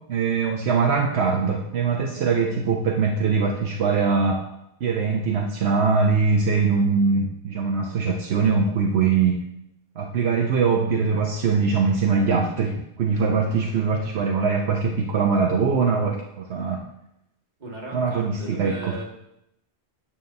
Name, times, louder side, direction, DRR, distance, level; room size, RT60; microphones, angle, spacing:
voice 1, 0.1-4.4 4.8-9.4 10.0-16.8 17.9-18.7, right 5 dB, 75° right, 1 dB, 1.0 m, -22 dB
voice 2, 17.6-19.0, equal, 40° right, -2 dB, 1.9 m, -36 dB
9.3 x 3.5 x 6.5 m, 0.81 s
omnidirectional pair, 1.1 m